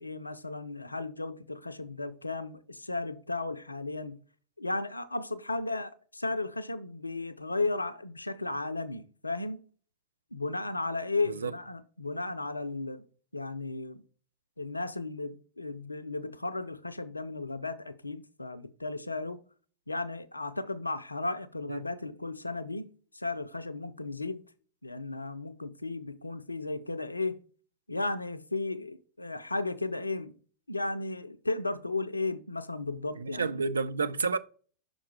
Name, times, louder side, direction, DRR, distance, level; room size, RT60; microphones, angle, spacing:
voice 1, 0.0-4.2 4.6-9.6 10.3-13.0 13.3-14.0 14.6-19.4 19.9-24.4 24.8-27.4 27.9-30.3 30.7-33.6, left 3 dB, 85° left, 0.4 m, -35 dB
voice 2, 33.2-34.4, right 4 dB, 75° right, 0.4 m, -30 dB
5.8 x 3.8 x 4.7 m
figure-of-eight pair, 90°, 0 cm